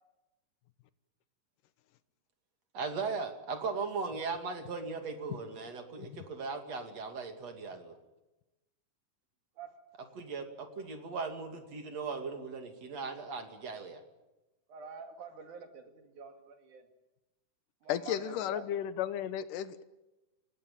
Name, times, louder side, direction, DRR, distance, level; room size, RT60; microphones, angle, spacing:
voice 1, 2.7-7.9 10.2-14.0, right 4 dB, 55° right, 6 dB, 3.6 m, -38 dB
voice 2, 14.7-16.8 17.8-18.7, right 5 dB, 70° right, 6 dB, 4.0 m, -47 dB
voice 3, 17.9-19.8, left 11 dB, 85° left, 13 dB, 2.7 m, -34 dB
28.5 x 19.0 x 8.9 m, 1.0 s
omnidirectional pair, 3.7 m